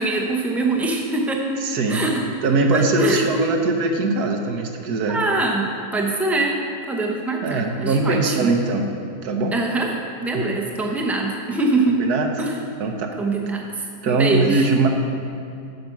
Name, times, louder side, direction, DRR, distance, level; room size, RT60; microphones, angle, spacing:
voice 1, 0.0-1.4 1.9-2.1 2.7-3.2 5.1-6.6 6.9-8.5 9.5-9.9 10.2-12.0 12.4-12.6 13.2-13.7 14.0-14.7, right 2 dB, ahead, 0 dB, 0.6 m, -23 dB
voice 2, 1.6-2.0 2.4-5.2 7.4-8.9 9.2-9.6 10.3-10.4 11.9-12.3 12.8-13.1 14.0-14.9, right 3 dB, 75° right, 3 dB, 1.4 m, -21 dB
9.2 x 6.6 x 5.9 m, 2.5 s
omnidirectional pair, 1.7 m